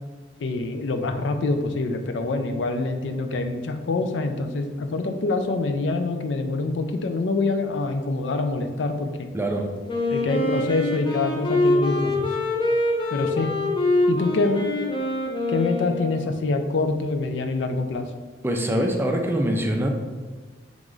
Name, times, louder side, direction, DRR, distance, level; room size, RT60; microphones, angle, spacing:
voice 1, 0.4-9.3 10.1-12.3 13.1-13.5 14.1-14.6 15.5-18.1, left 3 dB, 90° left, 7 dB, 0.4 m, -25 dB
voice 2, 9.3-9.6 18.4-19.9, right 1 dB, 15° right, 3 dB, 0.4 m, -23 dB
Wind instrument woodwind instrument, 9.9-16.5, left 2 dB, 25° left, 0.6 m, -24 dB
3.6 x 3.1 x 3.7 m, 1.3 s
head